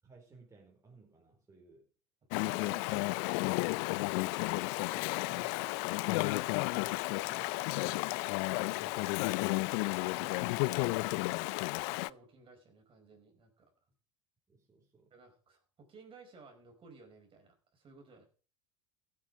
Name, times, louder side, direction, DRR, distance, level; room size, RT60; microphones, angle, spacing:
voice 1, 0.0-1.9 2.6-3.2 4.8-8.2 8.7-11.6 14.5-15.1, right 4 dB, 20° right, 4.6 m, -59 dB
Chatter / Stream, 2.3-12.1, left 24 dB, 65° left, 0.5 m, -32 dB
voice 2, 2.3-3.4 11.9-13.9 15.1-18.2, right 3 dB, 35° right, 5.1 m, -57 dB
15.0 x 8.6 x 4.7 m
hypercardioid pair, 85°, 15 cm